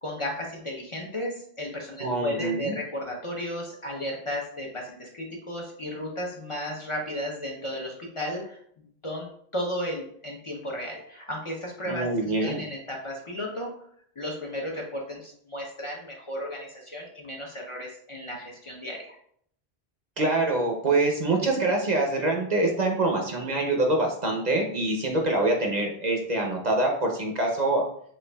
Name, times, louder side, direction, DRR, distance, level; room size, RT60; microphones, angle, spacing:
voice 1, 0.0-9.3 9.5-13.7 14.2-19.2, equal, 35° left, -2 dB, 0.6 m, -34 dB
voice 2, 2.0-2.7 11.9-12.6 20.2-27.8, right 2 dB, 50° right, 1 dB, 0.7 m, -25 dB
6.3 x 2.4 x 2.2 m, 0.64 s
omnidirectional pair, 1.0 m